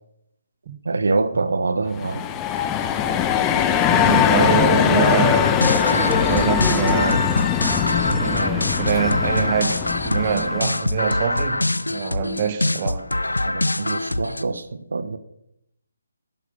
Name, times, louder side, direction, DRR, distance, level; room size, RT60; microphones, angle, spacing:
voice 1, 0.8-2.2 13.4-15.2, right 3 dB, 70° right, 1.1 m, -25 dB
sound 1, 1.9-10.7, left 9 dB, 15° left, 0.8 m, -21 dB
Bowed string instrument, 3.0-7.6, right 6 dB, 15° right, 1.4 m, -37 dB
voice 2, 3.9-7.5 8.1-13.1, right 7 dB, 35° right, 1.0 m, -25 dB
sound 2, 5.4-14.4, left 2 dB, 90° left, 0.7 m, -24 dB
11.0 x 11.0 x 5.3 m
figure-of-eight pair, 150°, 0 cm